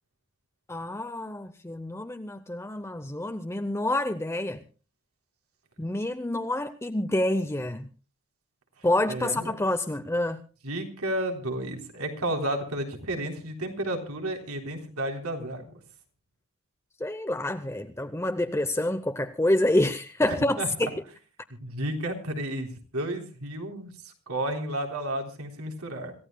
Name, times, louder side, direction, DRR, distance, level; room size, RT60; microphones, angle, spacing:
voice 1, 0.7-4.6 5.8-7.9 8.8-10.4 17.0-21.0, left 1 dB, 10° left, 0.6 m, -27 dB
voice 2, 9.1-9.5 10.6-15.7 20.3-20.7 21.5-26.1, right 1 dB, 90° right, 3.6 m, -32 dB
26.5 x 15.0 x 2.2 m
head